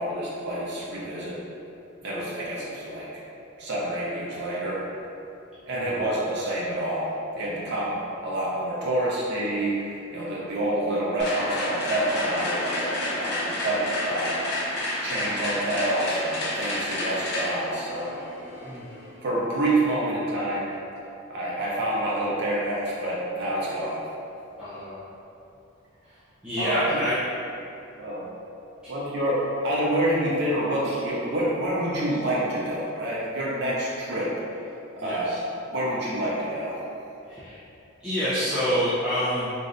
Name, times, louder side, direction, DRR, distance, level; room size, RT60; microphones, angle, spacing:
voice 1, 0.0-1.4 2.0-3.1 3.6-4.8 5.7-14.4 15.0-18.1 19.2-20.7 21.3-24.0 26.6-27.0 27.9-28.3 28.9-34.3 34.9-35.4 35.7-36.8, right 1 dB, 55° right, -7 dB, 0.7 m, -27 dB
sound 1, 11.2-19.2, left 1 dB, 55° left, 0.6 m, -30 dB
voice 2, 24.6-25.1 26.4-27.1 35.0-35.4 37.3-37.6 38.0-39.5, equal, 5° right, -15 dB, 0.5 m, -27 dB
3.1 x 2.5 x 2.5 m, 2.7 s
head